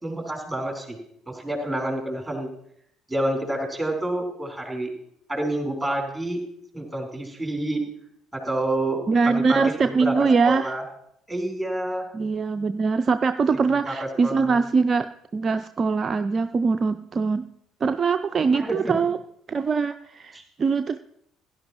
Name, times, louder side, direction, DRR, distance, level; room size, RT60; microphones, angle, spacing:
voice 1, 0.0-1.0 1.3-2.5 3.1-4.9 5.3-6.4 6.7-7.8 8.3-9.0 9.3-10.1 10.4-10.8 11.3-12.0 13.8-13.9 14.2-14.5 18.5-18.9 20.3-20.4, right 1 dB, 5° right, 1 dB, 3.7 m, -28 dB
voice 2, 9.1-10.7 12.1-15.1 15.3-17.5 17.8-19.2 19.5-21.0, right 4 dB, 35° right, 9 dB, 0.4 m, -22 dB
17.0 x 11.0 x 3.0 m, 0.72 s
figure-of-eight pair, 50°, 0 cm